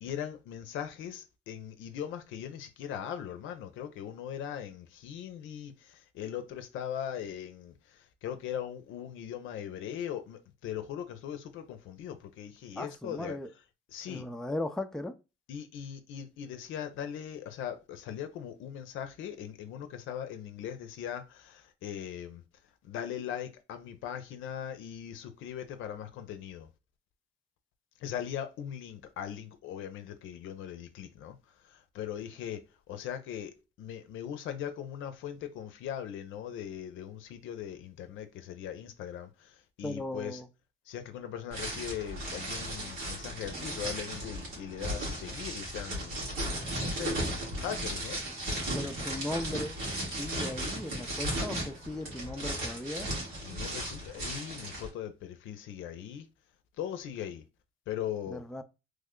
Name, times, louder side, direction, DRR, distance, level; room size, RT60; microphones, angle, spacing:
voice 1, 0.0-13.4 13.9-14.2 15.5-22.4 22.8-26.7 28.0-40.4 40.9-46.2 46.8-47.2 47.6-48.2 53.4-56.3 56.8-57.4 57.9-58.4, left 9 dB, 85° left, 0.6 m, -40 dB
voice 2, 12.8-13.5 14.1-15.2 39.8-40.5 48.7-49.8 50.2-53.1 58.3-58.6, left 1 dB, 5° left, 0.4 m, -37 dB
sound 1, 41.5-54.9, right 1 dB, 85° right, 1.7 m, -36 dB
3.2 x 2.1 x 3.6 m
cardioid pair, 90°, 20 cm